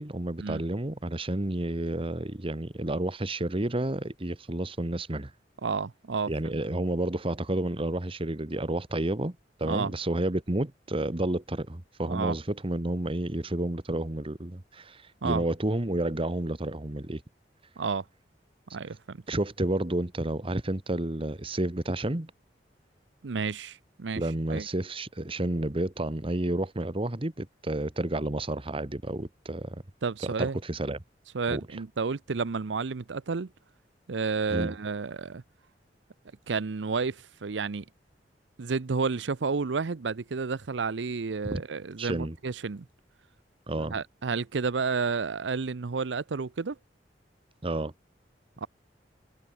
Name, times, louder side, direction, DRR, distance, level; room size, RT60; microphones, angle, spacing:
voice 1, 0.0-5.3 6.3-17.2 19.3-22.3 24.1-29.8 30.2-31.0 31.5-31.6 34.5-34.7 41.5-41.6 42.0-42.4 43.7-43.9 47.6-47.9, right 1 dB, 30° right, 1.4 m, -30 dB
voice 2, 5.6-6.6 9.6-9.9 12.0-12.4 15.2-15.4 17.8-18.0 18.7-19.2 23.2-24.7 30.0-30.6 31.3-33.5 34.1-35.4 36.5-37.8 38.6-42.8 43.8-46.8 48.6-48.7, right 4 dB, 85° right, 0.6 m, -31 dB
head